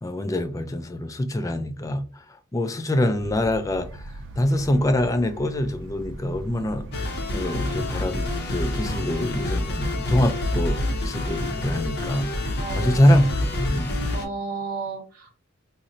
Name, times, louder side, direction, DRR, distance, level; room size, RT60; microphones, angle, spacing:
voice 1, 0.0-2.2 2.5-4.1 4.4-6.9 7.3-13.9, left 1 dB, 15° left, 0.3 m, -24 dB
sound 1, 3.2-10.4, right 1 dB, 65° right, 0.4 m, -39 dB
sound 2, 6.9-14.3, left 1 dB, 55° left, 0.6 m, -27 dB
voice 2, 12.6-13.1 14.1-15.3, right 4 dB, 45° right, 1.1 m, -33 dB
4.0 x 2.1 x 2.5 m
head